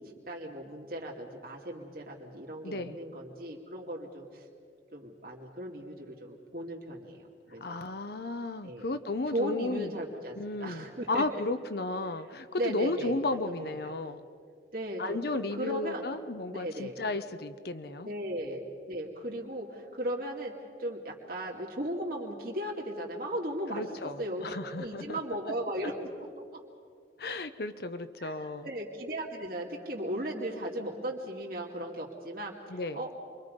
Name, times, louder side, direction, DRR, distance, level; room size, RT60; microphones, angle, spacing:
voice 1, 0.0-4.5 4.9-7.8 8.6-8.9 9.3-11.4 12.6-13.7 14.7-15.2 15.5-16.0 16.5-16.9 18.0-25.9 26.2-26.6 28.2-33.3, right 1 dB, 55° right, -2 dB, 2.6 m, -37 dB
voice 2, 2.6-3.0 7.6-9.9 10.3-14.2 15.0-18.1 23.7-25.2 25.8-25.9 27.2-28.7 32.7-33.0, left 2 dB, 60° left, 9 dB, 0.9 m, -34 dB
28.0 x 23.5 x 5.3 m, 2.2 s
head